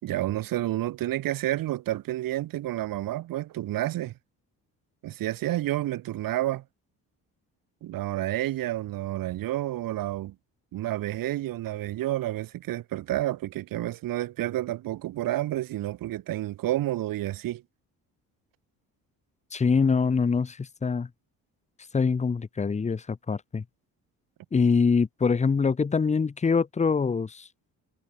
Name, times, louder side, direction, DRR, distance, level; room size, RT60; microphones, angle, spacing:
voice 1, 0.0-4.1 5.0-6.6 7.8-10.3 10.7-17.6, right 15 dB, 80° right, 4.0 m, -30 dB
voice 2, 19.5-21.1 21.9-23.6 24.5-27.5, left 5 dB, 20° left, 1.9 m, -24 dB
cardioid pair, 170°, 33 cm